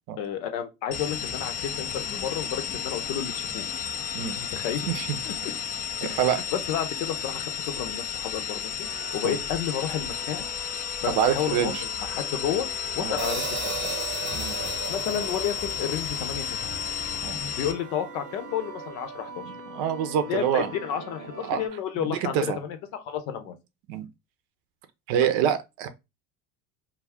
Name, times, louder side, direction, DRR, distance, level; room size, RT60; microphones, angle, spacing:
voice 1, 0.2-3.7 4.4-4.9 5.2-5.3 6.0-10.5 11.0-12.7 12.9-14.0 14.9-16.7 17.5-19.4 20.2-23.5 25.2-25.3, left 9 dB, 60° left, 0.8 m, -31 dB
sound 1, 0.9-17.7, left 8 dB, 20° left, 0.4 m, -33 dB
voice 2, 4.9-5.2 6.2-6.4 9.2-9.4 11.1-11.8 13.0-13.1 14.3-14.6 17.2-17.4 19.5-20.7 21.5-21.6 22.1-22.6 23.9-24.1 25.1-25.9, right 9 dB, 60° right, 0.6 m, -26 dB
sound 2, 8.8-21.7, right 3 dB, 90° right, 0.8 m, -43 dB
Hi-hat, 13.2-17.4, right 6 dB, 25° right, 0.8 m, -36 dB
2.4 x 2.3 x 3.4 m
hypercardioid pair, 70°, 43 cm